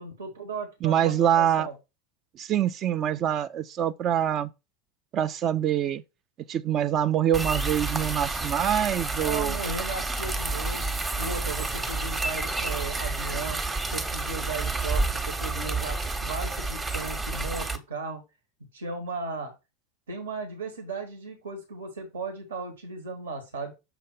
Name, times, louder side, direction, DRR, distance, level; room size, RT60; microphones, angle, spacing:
voice 1, 0.0-1.7 9.2-10.9 11.2-13.6 13.9-18.2 18.7-19.5 20.1-23.7, right 3 dB, 75° right, 1.5 m, -36 dB
voice 2, 0.8-1.7 2.4-4.5 5.1-6.0 6.5-9.6, right 10 dB, 40° right, 0.4 m, -25 dB
sound 1, 7.3-17.8, right 3 dB, 15° right, 1.0 m, -30 dB
6.7 x 2.6 x 5.6 m
figure-of-eight pair, 80°, 0 cm